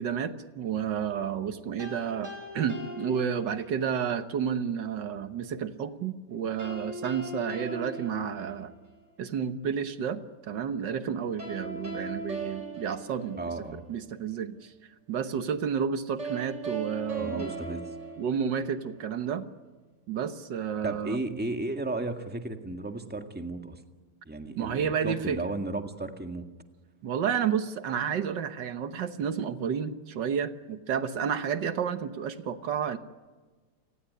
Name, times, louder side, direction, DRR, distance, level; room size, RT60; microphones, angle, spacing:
voice 1, 0.0-8.7 9.2-13.4 13.7-14.7 15.1-17.5 18.2-19.4 20.1-21.2 24.6-25.4 27.0-33.0, right 7 dB, 80° right, 11 dB, 1.8 m, -31 dB
sound 1, 1.8-3.9 6.6-9.0 11.4-13.9 16.2-19.0, right 3 dB, 40° right, 6.3 m, -39 dB
voice 2, 13.4-13.8 17.2-17.8 20.8-23.8 24.2-26.5, right 2 dB, 5° right, 6 dB, 1.7 m, -34 dB
29.0 x 18.5 x 9.8 m, 1.3 s
omnidirectional pair, 1.9 m